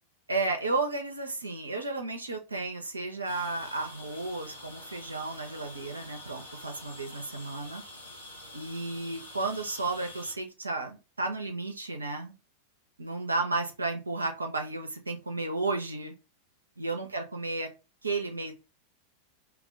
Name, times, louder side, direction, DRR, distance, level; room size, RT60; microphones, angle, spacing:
voice 1, 0.3-7.8 8.5-12.3 13.0-16.1 16.8-17.7 18.0-18.5, right 3 dB, 80° right, 0.4 m, -33 dB
sound 1, 3.2-10.3, left 1 dB, 80° left, 0.7 m, -47 dB
2.3 x 2.1 x 3.6 m
figure-of-eight pair, 90°, 0 cm